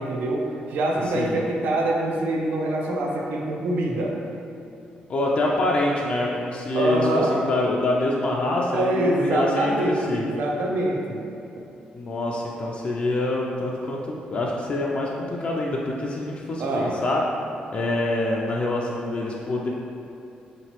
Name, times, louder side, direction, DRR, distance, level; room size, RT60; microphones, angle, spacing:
voice 1, 0.0-4.2 6.7-7.4 8.7-11.3 16.6-17.0, right 1 dB, 80° right, -1 dB, 0.5 m, -25 dB
voice 2, 5.1-10.2 11.9-17.2 17.7-19.7, left 2 dB, 40° left, -3 dB, 0.3 m, -25 dB
3.9 x 3.0 x 2.9 m, 2.7 s
cardioid pair, 135°, 3 cm